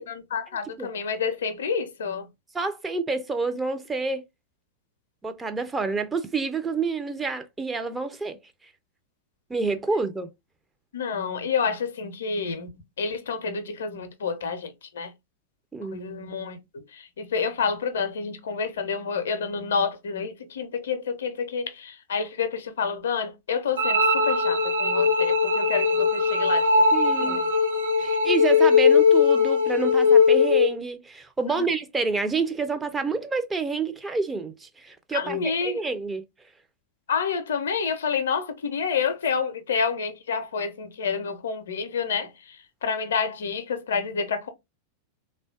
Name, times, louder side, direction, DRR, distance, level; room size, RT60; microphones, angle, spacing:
voice 1, 0.0-2.3 10.9-12.7 13.0-15.1 15.9-26.9 27.2-27.5 31.6-31.7 35.1-35.8 37.1-44.5, left 5 dB, 65° left, 0.5 m, -29 dB
voice 2, 2.5-4.2 5.2-8.4 9.5-10.3 15.7-16.0 26.9-27.4 28.0-36.2, right 4 dB, 15° right, 0.4 m, -28 dB
sound 1, 23.8-30.8, left 4 dB, 70° right, 0.7 m, -20 dB
3.2 x 2.2 x 2.4 m
figure-of-eight pair, 90°, 0 cm